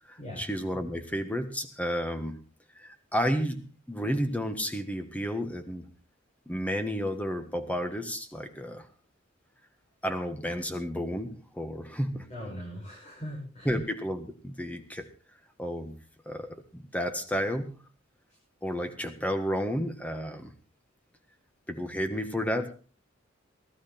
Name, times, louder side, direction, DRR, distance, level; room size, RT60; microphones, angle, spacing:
voice 1, 0.1-2.4 2.7-5.9 6.5-8.9 10.0-12.3 13.6-15.1 15.6-17.7 18.6-20.5 21.7-22.7, equal, 5° left, 7 dB, 1.6 m, -32 dB
voice 2, 12.3-13.7, equal, 35° left, -4 dB, 6.2 m, -40 dB
19.0 x 12.5 x 4.4 m, 0.38 s
head